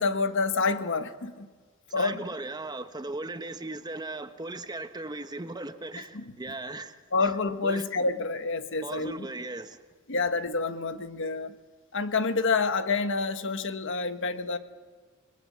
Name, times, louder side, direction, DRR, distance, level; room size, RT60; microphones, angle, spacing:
voice 1, 0.0-1.5 1.9-2.2 6.0-6.3 7.1-9.3 10.1-11.6 11.9-14.6, left 4 dB, 60° left, 1.3 m, -28 dB
voice 2, 2.0-6.9 7.6-7.8 8.8-9.8, right 2 dB, 20° right, 1.0 m, -37 dB
29.5 x 21.5 x 7.5 m
head